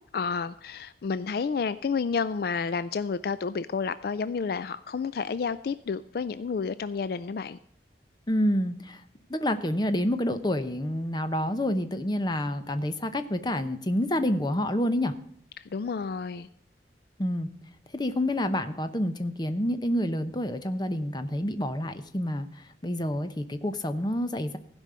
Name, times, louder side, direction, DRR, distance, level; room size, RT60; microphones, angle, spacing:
voice 1, 0.1-7.6 15.6-16.5, left 5 dB, 55° left, 14 dB, 0.4 m, -30 dB
voice 2, 8.3-9.0 9.3-15.1 17.2-17.5 17.9-22.5 22.8-24.6, left 1 dB, 25° left, 10 dB, 0.8 m, -28 dB
15.5 x 5.3 x 7.5 m, 0.69 s
head